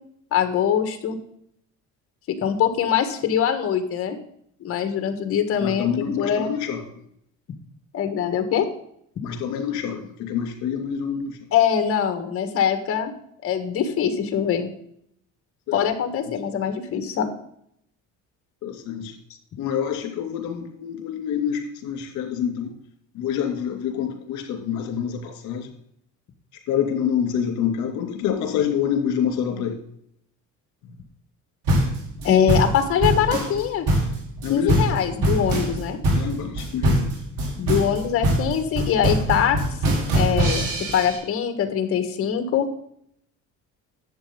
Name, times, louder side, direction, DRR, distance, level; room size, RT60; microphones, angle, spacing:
voice 1, 0.3-1.2 2.3-4.2 4.6-6.5 7.9-8.7 11.5-13.1 13.4-14.7 15.7-17.3 32.2-33.9 34.5-36.0 37.6-39.6 40.1-42.7, left 8 dB, 45° left, 7 dB, 1.6 m, -23 dB
voice 2, 5.6-6.8 9.2-11.4 15.7-15.8 18.6-19.1 19.6-22.7 23.1-25.7 26.7-29.8 34.4-34.8 36.1-37.1, left 8 dB, 65° left, 4 dB, 2.8 m, -26 dB
sound 1, 31.7-41.2, right 1 dB, 85° right, 4.5 m, -22 dB
11.5 x 8.0 x 3.9 m, 0.69 s
cardioid pair, 160°, 30 cm